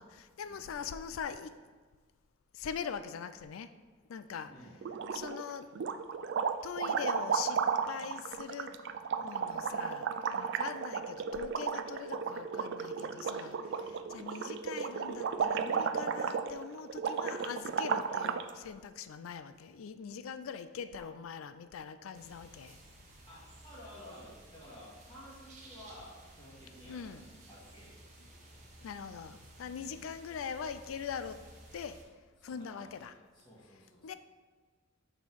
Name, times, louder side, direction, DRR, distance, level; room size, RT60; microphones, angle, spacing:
voice 1, 0.0-1.6 2.5-3.7 4.1-4.5 5.1-5.7 6.6-7.6 7.9-8.7 9.2-22.8 26.8-27.3 28.8-31.4 31.7-32.0 32.4-33.1 34.0-34.1, left 7 dB, 80° left, 12 dB, 0.4 m, -42 dB
sound 1, 4.8-5.4 5.8-18.5, right 6 dB, 60° right, 0.3 m, -34 dB
voice 2, 13.7-14.0 21.0-21.1 23.3-28.0 28.3-28.6 29.6-30.0 32.4-34.2, equal, 20° left, -9 dB, 1.8 m, -54 dB
sound 2, 22.1-32.0, right 1 dB, 35° right, 1.0 m, -55 dB
5.4 x 4.3 x 4.6 m, 1.4 s
head